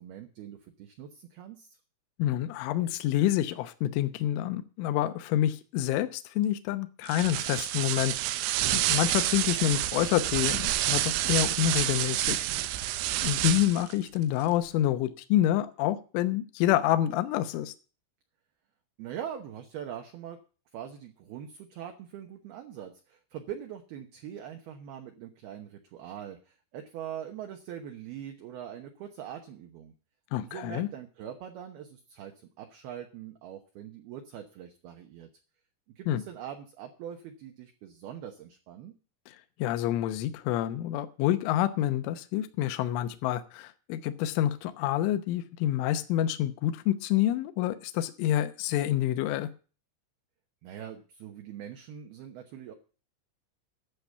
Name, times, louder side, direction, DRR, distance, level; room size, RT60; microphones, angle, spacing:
voice 1, 0.0-1.7 9.2-9.6 19.0-20.4 20.7-29.9 30.4-35.3 36.0-38.9 50.6-52.7, right 9 dB, 75° right, 4 dB, 2.4 m, -42 dB
voice 2, 2.2-8.2 8.4-12.4 13.2-17.7 30.3-30.9 36.1-36.2 39.3-39.4 39.6-49.5, left 12 dB, 75° left, 10 dB, 3.2 m, -28 dB
sound 1, 7.1-13.9, right 14 dB, 90° right, 3.5 m, -29 dB
11.5 x 7.1 x 8.0 m, 0.37 s
omnidirectional pair, 5.9 m